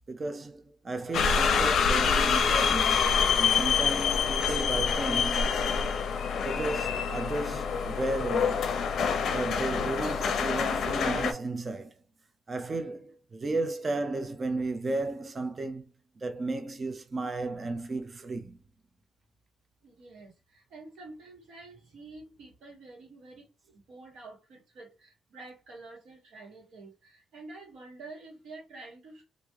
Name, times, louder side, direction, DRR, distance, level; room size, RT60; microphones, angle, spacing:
voice 1, 0.1-5.5 6.4-8.7 9.3-11.9 12.5-15.9 16.2-18.6, right 2 dB, 25° right, 0.4 m, -34 dB
sound 1, 1.1-11.3, left 6 dB, 55° left, 0.5 m, -26 dB
voice 2, 19.8-29.2, right 3 dB, 75° right, 1.5 m, -48 dB
3.5 x 2.5 x 3.1 m
cardioid pair, 170°, 0 cm